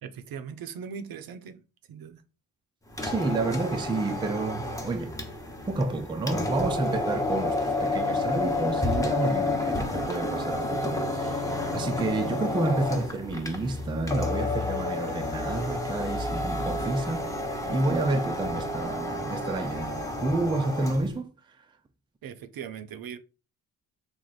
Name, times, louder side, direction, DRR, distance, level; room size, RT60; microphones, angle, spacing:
voice 1, 0.0-1.6 1.9-2.2 22.2-23.2, right 7 dB, 65° right, 0.6 m, -39 dB
sound 1, 2.9-21.1, left 2 dB, 10° left, 0.8 m, -30 dB
voice 2, 3.0-5.2 5.6-17.3 17.7-21.3, right 2 dB, 15° right, 0.4 m, -30 dB
3.2 x 2.5 x 3.9 m
cardioid pair, 90°, 39 cm